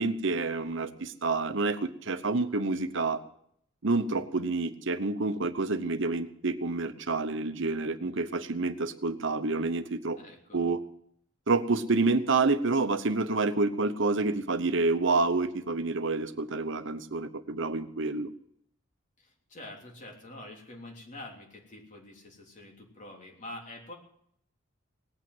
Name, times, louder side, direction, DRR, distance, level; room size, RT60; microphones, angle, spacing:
voice 1, 0.0-3.2 3.8-10.2 10.5-10.8 11.5-18.3, right 3 dB, 65° right, 10 dB, 1.0 m, -28 dB
voice 2, 10.1-10.6 19.2-23.9, left 1 dB, 40° left, 0 dB, 3.3 m, -46 dB
18.5 x 9.0 x 7.9 m, 0.69 s
head